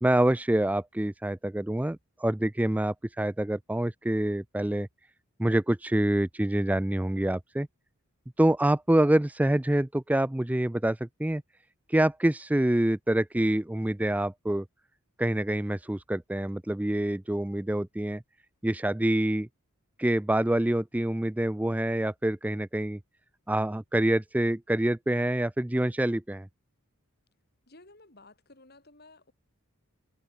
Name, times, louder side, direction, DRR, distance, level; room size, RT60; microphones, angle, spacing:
voice 1, 0.0-4.9 5.4-7.7 8.4-11.4 11.9-14.6 15.2-18.2 18.6-19.5 20.0-23.0 23.5-26.5, right 1 dB, 5° right, 0.3 m, -26 dB
voice 2, 27.7-29.3, left 2 dB, 45° left, 3.8 m, -54 dB
head